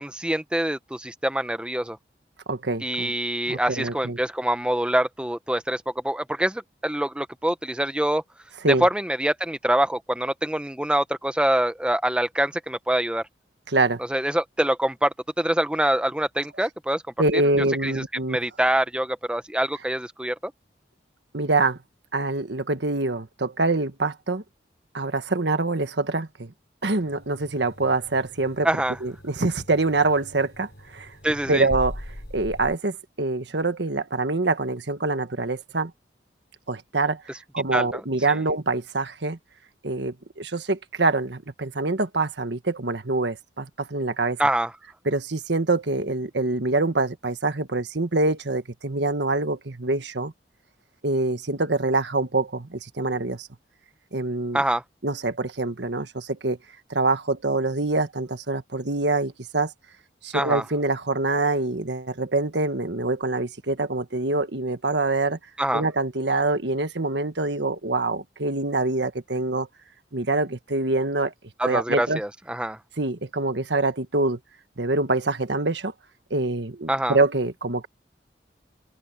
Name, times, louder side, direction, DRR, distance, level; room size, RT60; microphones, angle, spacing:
voice 1, 0.0-2.0 2.8-8.2 8.7-13.2 14.1-17.0 17.3-17.4 17.8-20.3 28.6-29.0 31.2-31.7 37.7-38.0 38.3-38.4 44.4-44.7 54.5-54.8 60.3-60.6 65.6-65.8 71.6-72.8 76.9-77.2, right 1 dB, 5° right, 0.7 m, -25 dB
voice 2, 2.5-3.1 3.5-4.2 8.6-8.8 13.7-14.0 17.2-18.4 21.3-21.8 22.1-24.4 24.9-26.5 26.8-28.7 29.0-31.1 31.5-32.0 32.3-35.9 36.7-39.4 39.8-44.4 45.0-50.3 51.0-53.5 54.1-54.6 55.0-56.6 56.9-59.7 60.2-65.4 65.7-69.7 70.1-71.3 71.6-72.2 73.0-74.4 74.8-75.9 76.3-77.9, right 2 dB, 80° right, 1.5 m, -25 dB
sound 1, 27.0-32.7, equal, 60° left, 3.6 m, -40 dB
head